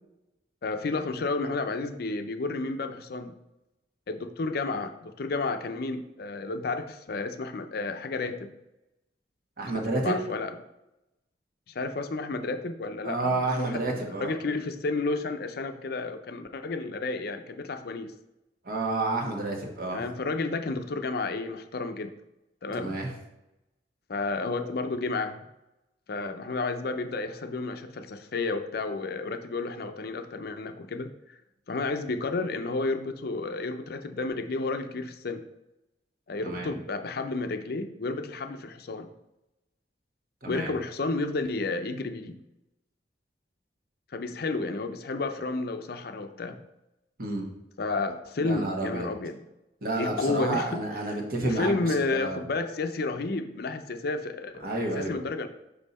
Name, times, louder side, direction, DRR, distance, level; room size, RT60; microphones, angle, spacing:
voice 1, 0.6-3.3 4.1-8.5 9.7-10.5 11.7-18.1 19.9-22.1 22.6-23.0 24.1-25.4 26.1-31.4 31.7-35.4 36.3-39.1 40.4-42.4 44.1-46.6 47.8-49.4 50.0-50.8 51.1-54.7 54.9-55.5, left 3 dB, 60° left, 8 dB, 0.5 m, -31 dB
voice 2, 9.6-10.2 13.0-14.3 18.6-20.0 22.8-23.1 36.4-36.7 40.4-40.7 47.2-47.5 48.4-49.1 49.8-52.4 54.6-55.2, right 2 dB, 55° right, 0 dB, 1.3 m, -30 dB
5.6 x 5.5 x 4.1 m, 0.93 s
head